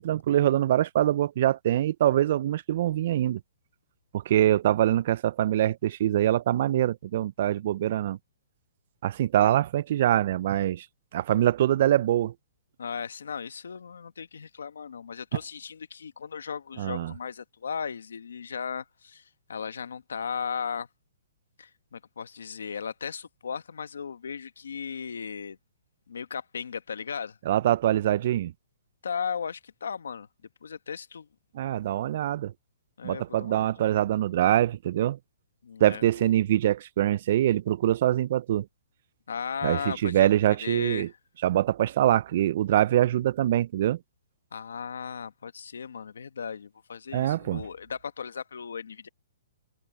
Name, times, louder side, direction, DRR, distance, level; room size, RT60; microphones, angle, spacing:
voice 1, 0.0-3.4 4.1-8.2 9.0-10.9 11.1-12.3 16.8-17.1 27.5-28.5 31.5-32.5 33.0-35.2 35.8-38.7 39.6-41.1 41.4-44.0 47.1-47.6, right 12 dB, 50° right, 0.3 m, -24 dB
voice 2, 12.8-19.2 19.5-20.9 21.6-25.6 26.1-27.4 29.0-30.3 30.6-31.3 33.0-33.8 35.6-36.3 39.3-40.3 40.6-41.2 44.5-49.1, left 6 dB, 85° left, 1.4 m, -36 dB
hypercardioid pair, 150°, 0 cm